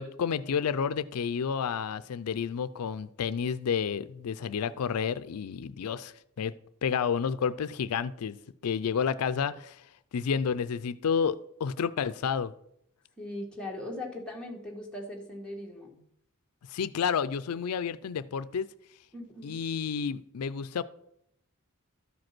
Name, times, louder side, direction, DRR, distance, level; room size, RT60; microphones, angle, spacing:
voice 1, 0.0-6.5 6.8-8.4 8.6-9.8 10.1-12.5 16.7-18.7 19.4-20.8, left 6 dB, 85° left, 15 dB, 0.4 m, -30 dB
voice 2, 13.2-16.0 19.1-19.6, left 1 dB, 5° left, -2 dB, 1.9 m, -39 dB
12.5 x 5.1 x 6.0 m, 0.75 s
head